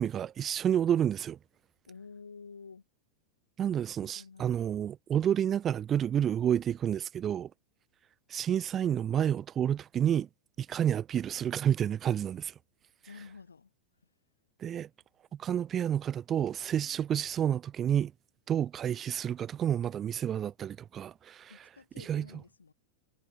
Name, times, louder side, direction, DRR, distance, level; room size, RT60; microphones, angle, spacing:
voice 1, 0.0-1.4 3.6-7.5 8.3-10.3 10.6-12.5 14.6-14.9 15.4-18.1 18.5-21.5 22.0-22.3, right 9 dB, 25° right, 0.7 m, -29 dB
voice 2, 1.9-2.8 4.1-4.7 13.1-13.7 21.5-22.7, left 5 dB, 75° left, 5.1 m, -50 dB
figure-of-eight pair, 90°, 0 cm